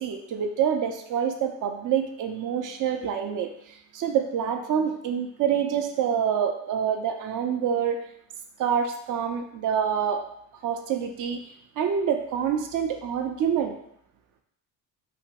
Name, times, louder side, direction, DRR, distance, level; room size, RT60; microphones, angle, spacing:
voice 1, 0.0-8.0 8.6-10.2 10.6-11.4 11.8-13.8, right 8 dB, 50° right, 5 dB, 0.5 m, -26 dB
2.9 x 2.6 x 2.9 m, 0.73 s
cardioid pair, 90°, 41 cm